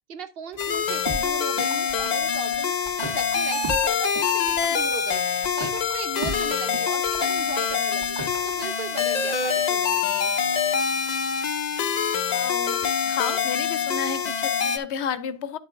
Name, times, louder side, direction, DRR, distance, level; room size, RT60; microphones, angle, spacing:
voice 1, 0.1-2.7 3.0-5.3 5.6-8.2 8.4-10.7, right 6 dB, 60° right, 0.9 m, -37 dB
sound 1, 0.5-8.8, right 1 dB, 25° right, 2.2 m, -37 dB
sound 2, 0.6-14.8, left 6 dB, 45° left, 0.6 m, -25 dB
voice 2, 12.3-15.6, left 7 dB, 75° left, 0.9 m, -32 dB
9.8 x 7.4 x 2.5 m
omnidirectional pair, 1.1 m